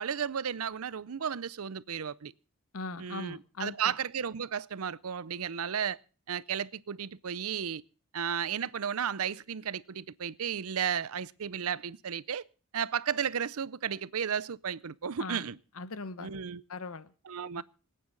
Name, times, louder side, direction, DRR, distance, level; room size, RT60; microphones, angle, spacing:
voice 1, 0.0-2.3 3.0-6.0 6.3-7.8 8.1-12.4 12.7-15.6 16.2-16.6 17.2-17.6, right 7 dB, 80° right, 0.6 m, -34 dB
voice 2, 2.7-3.9 15.2-15.4 15.8-16.4 16.7-17.1 17.6-17.7, left 3 dB, 75° left, 1.0 m, -39 dB
26.5 x 9.2 x 3.9 m
head